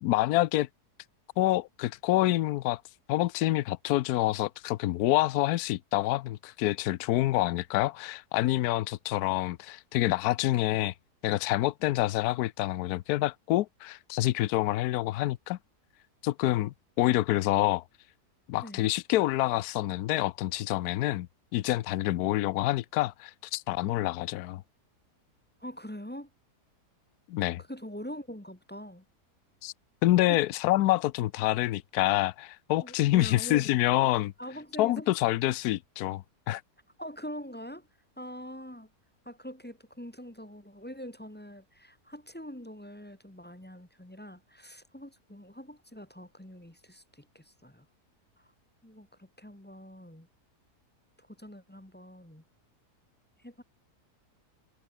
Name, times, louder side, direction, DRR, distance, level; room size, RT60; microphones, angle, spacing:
voice 1, 0.0-0.7 1.4-2.8 3.1-10.9 11.2-15.6 16.2-17.8 18.5-24.6 27.3-27.6 29.6-29.7 30.0-34.3 34.8-36.6, left 16 dB, 75° left, 1.1 m, -27 dB
voice 2, 25.6-26.3 27.6-29.0 30.3-30.4 32.8-33.7 34.4-35.1 37.0-37.9 38.2-38.9 39.2-47.8 48.4-48.5 48.8-50.3 51.2-52.4 53.4-53.6, equal, 5° left, 1.4 m, -44 dB
omnidirectional pair, 1.7 m